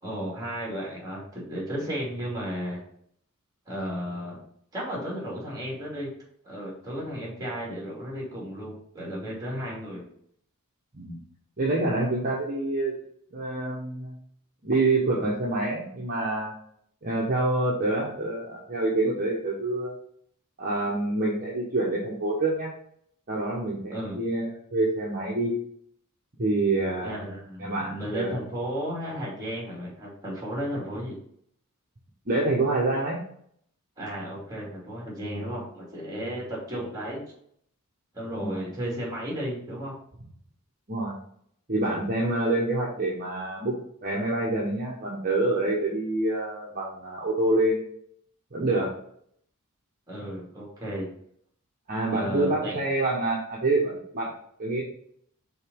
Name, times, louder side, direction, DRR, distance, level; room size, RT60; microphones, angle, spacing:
voice 1, 0.0-2.8 3.7-4.4 4.7-6.1 6.4-10.0 23.9-24.2 27.0-31.2 34.0-37.2 38.1-39.9 50.1-51.1 52.1-52.8, equal, 15° right, -3 dB, 2.7 m, -34 dB
voice 2, 11.6-13.0 13.3-14.1 14.6-16.5 17.0-19.9 20.6-22.7 23.3-25.5 26.4-27.2 27.6-28.3 32.3-33.2 38.4-38.6 40.9-41.1 41.7-43.7 44.0-47.8 48.5-48.9 51.9-54.3 54.6-54.8, right 2 dB, 40° right, -4 dB, 1.3 m, -26 dB
5.5 x 4.0 x 5.4 m, 0.66 s
head